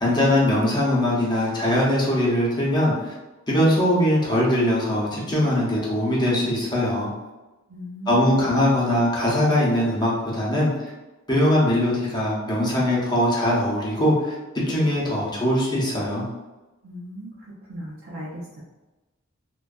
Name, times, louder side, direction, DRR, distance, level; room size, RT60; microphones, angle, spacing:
voice 1, 0.0-3.1 3.5-7.1 8.1-10.9 11.3-14.3 14.7-16.2, left 1 dB, 20° left, -6 dB, 0.7 m, -21 dB
voice 2, 7.7-8.5 16.8-17.3 17.7-18.6, right 1 dB, 85° right, -7 dB, 0.5 m, -37 dB
2.5 x 2.2 x 2.3 m, 1.1 s
head